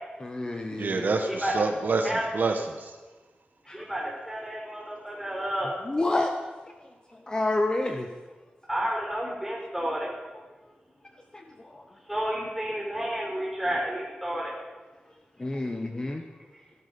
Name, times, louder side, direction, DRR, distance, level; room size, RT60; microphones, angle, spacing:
voice 1, 0.2-1.1 3.7-3.9 5.8-6.3 7.1-8.1 11.3-11.8 15.4-16.2, left 2 dB, 25° left, 4 dB, 1.0 m, -29 dB
voice 2, 0.7-3.0, right 3 dB, 65° right, 4 dB, 1.3 m, -27 dB
voice 3, 3.6-5.7 8.7-10.1 12.1-14.5, right 1 dB, 5° right, -3 dB, 5.7 m, -31 dB
16.5 x 12.0 x 5.3 m, 1.2 s
wide cardioid pair, 140°, 3 cm